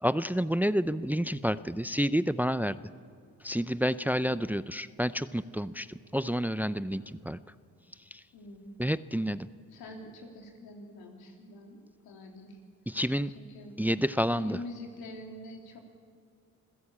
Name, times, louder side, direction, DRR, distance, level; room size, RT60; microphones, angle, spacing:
voice 1, 0.0-2.8 3.4-7.4 8.1-8.2 8.8-9.5 12.9-13.3 13.8-14.6, equal, 5° right, 15 dB, 0.6 m, -29 dB
voice 2, 8.3-8.8 9.7-11.8 12.0-12.6 13.3-14.0 14.4-15.8, left 2 dB, 85° left, 1 dB, 3.5 m, -45 dB
26.5 x 15.5 x 8.7 m, 2.3 s
supercardioid pair, 55°, 36 cm